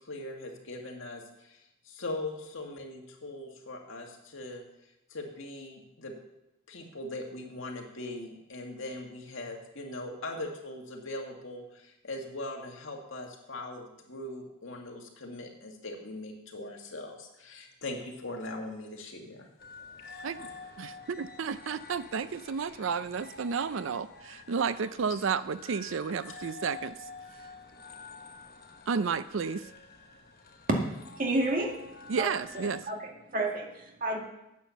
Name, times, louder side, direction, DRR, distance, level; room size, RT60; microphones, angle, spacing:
voice 1, 0.0-6.1 6.7-19.5, left 2 dB, 70° left, 1 dB, 2.1 m, -40 dB
sound 1, 19.6-32.8, left 4 dB, 50° left, 1.2 m, -48 dB
voice 2, 21.2-27.0 28.9-29.7 32.1-32.8, right 5 dB, 70° right, 14 dB, 0.5 m, -31 dB
voice 3, 31.1-31.8 32.2-32.3 32.9-34.2, right 2 dB, 40° right, 1 dB, 2.0 m, -30 dB
9.4 x 8.6 x 7.1 m, 0.89 s
head